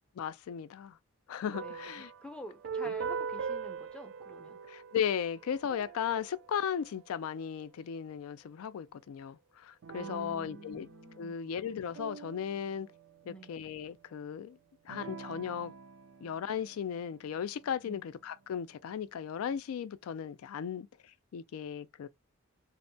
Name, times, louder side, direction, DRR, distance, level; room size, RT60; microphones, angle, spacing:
voice 1, 0.2-1.0 1.3-2.1 2.9-3.0 4.7-10.9 11.2-12.9 13.3-14.6 14.9-15.7 16.2-20.9 21.3-22.1, left 8 dB, 90° left, 0.3 m, -36 dB
sound 1, 1.5-7.5 9.8-13.6 14.9-17.6, right 6 dB, 60° right, 0.3 m, -43 dB
voice 2, 1.6-4.6 10.0-11.5 13.2-13.6 17.8-18.0, right 1 dB, 5° left, 0.4 m, -48 dB
2.6 x 2.1 x 2.6 m
head